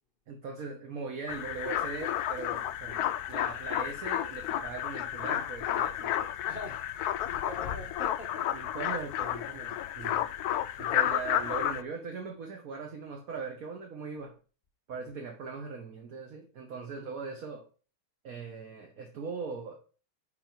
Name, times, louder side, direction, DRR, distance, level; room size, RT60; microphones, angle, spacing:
voice 1, 0.3-6.3 8.5-10.3 10.8-14.4 14.9-17.7 18.2-19.8, right 4 dB, 50° right, 1.3 m, -40 dB
sound 1, 1.3-11.8, left 11 dB, 90° left, 0.8 m, -32 dB
voice 2, 6.5-8.6, left 1 dB, 50° left, 0.6 m, -44 dB
9.9 x 4.1 x 4.5 m
omnidirectional pair, 2.2 m